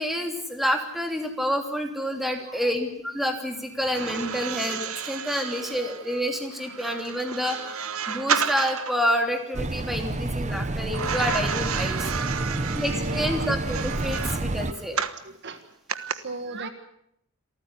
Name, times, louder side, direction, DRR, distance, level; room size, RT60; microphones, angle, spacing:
voice 1, 0.0-12.1 12.7-15.0, equal, ahead, 4 dB, 3.1 m, -28 dB
voice 2, 2.5-2.8 5.1-6.0 11.2-11.4 12.4-13.5 14.6-15.0 15.2-15.6 16.1-16.7, right 3 dB, 50° right, 9 dB, 1.7 m, -40 dB
sound 1, 3.8-9.0 10.9-15.2 15.9-16.1, right 7 dB, 70° right, 1.3 m, -31 dB
sound 2, 9.5-14.7, right 2 dB, 30° right, 0.9 m, -29 dB
27.0 x 14.5 x 9.5 m, 0.75 s
head